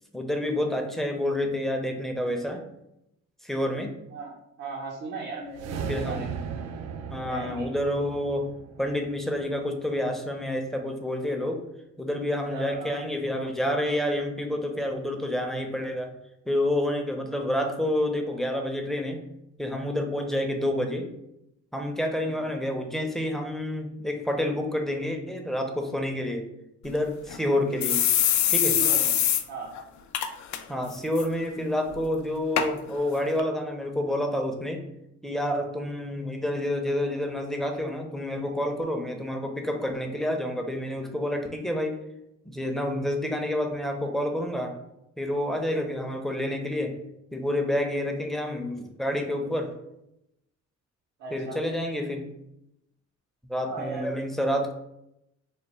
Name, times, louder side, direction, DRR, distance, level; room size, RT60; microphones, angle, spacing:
voice 1, 0.1-2.6 3.4-3.9 5.9-6.2 7.1-8.5 8.8-11.6 12.0-16.1 16.5-19.2 19.6-21.1 21.7-26.5 26.8-28.0 28.5-28.8 30.7-34.8 35.2-42.0 42.4-44.7 45.2-46.9 47.3-49.7 51.3-52.2 53.5-54.7, left 1 dB, ahead, 3 dB, 0.6 m, -28 dB
voice 2, 4.1-6.3 7.2-7.7 12.5-13.0 22.2-22.5 28.8-29.1 29.5-29.7 51.2-51.6 53.7-54.3, right 3 dB, 75° right, -4 dB, 0.9 m, -37 dB
sound 1, 5.5-9.9, right 7 dB, 60° right, 0.4 m, -37 dB
sound 2, 26.9-27.0 27.3-27.4 27.8-29.4 29.8-29.9 30.1-30.6 30.9-31.2 31.9-32.0 32.6-32.7 33.4-33.5, left 10 dB, 70° left, 0.5 m, -23 dB
3.4 x 2.2 x 4.2 m, 0.83 s
cardioid pair, 90°, 30 cm